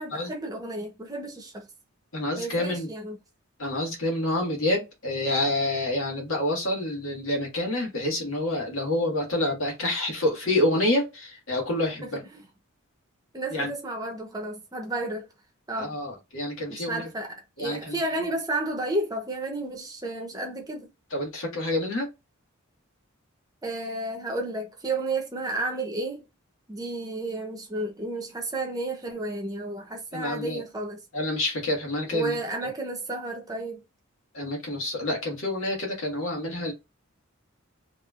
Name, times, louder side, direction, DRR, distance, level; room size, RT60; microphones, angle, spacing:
voice 1, 0.0-1.7 2.4-3.2 12.0-12.5 13.3-15.3 15.7-15.9 16.7-20.9 23.6-26.2 26.7-31.0 32.1-33.8, right 2 dB, 20° right, 1.0 m, -32 dB
voice 2, 2.1-2.9 3.6-12.2 13.5-13.7 15.8-17.1 17.6-18.0 21.1-22.1 30.1-30.6 31.1-32.3 34.3-36.7, left 1 dB, 75° left, 1.8 m, -28 dB
3.4 x 3.2 x 2.5 m
head